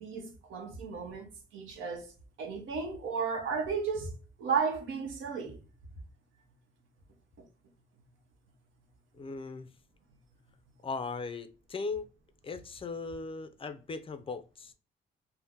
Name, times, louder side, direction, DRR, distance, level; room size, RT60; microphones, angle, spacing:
voice 1, 0.0-2.1 2.4-5.6, right 5 dB, 85° right, 0.9 m, -34 dB
voice 2, 9.1-9.7 10.8-12.1 12.4-14.7, left 4 dB, 30° left, 0.4 m, -38 dB
2.7 x 2.1 x 3.4 m
cardioid pair, 90°, 20 cm